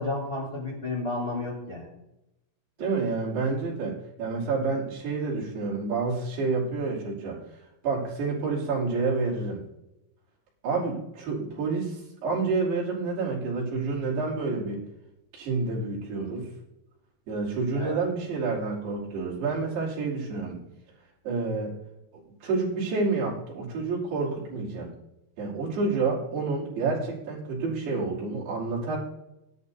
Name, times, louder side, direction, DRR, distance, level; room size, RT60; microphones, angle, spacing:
voice 1, 0.0-1.9 17.7-17.9, left 2 dB, 20° left, -6 dB, 4.4 m, -31 dB
voice 2, 2.8-7.4 7.8-9.6 10.6-14.8 15.3-16.5 17.3-20.6 21.2-21.8 22.1-24.9 25.4-29.0, right 4 dB, 70° right, -5 dB, 5.0 m, -29 dB
16.0 x 11.0 x 2.7 m, 0.89 s
omnidirectional pair, 5.0 m